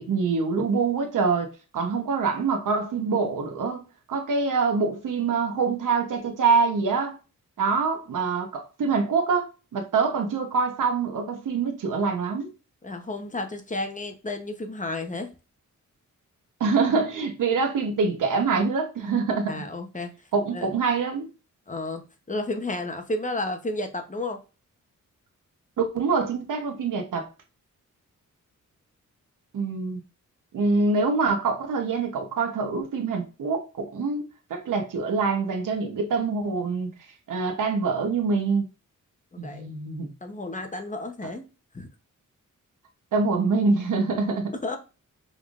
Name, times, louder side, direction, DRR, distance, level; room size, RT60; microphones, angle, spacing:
voice 1, 0.0-7.2 7.6-12.5 16.6-19.6 20.3-21.3 25.8-27.3 29.5-30.0 30.5-36.9 37.3-38.6 39.4-40.1 41.2-41.3 43.1-44.5, right 4 dB, 75° right, 0.9 m, -25 dB
voice 2, 12.8-15.3 19.5-20.1 20.5-20.7 21.7-22.0 22.3-24.4 39.3-39.7 40.2-41.4 41.7-41.9 44.6-44.8, left 2 dB, 25° left, 0.8 m, -32 dB
5.2 x 3.4 x 2.4 m
wide cardioid pair, 100°, 32 cm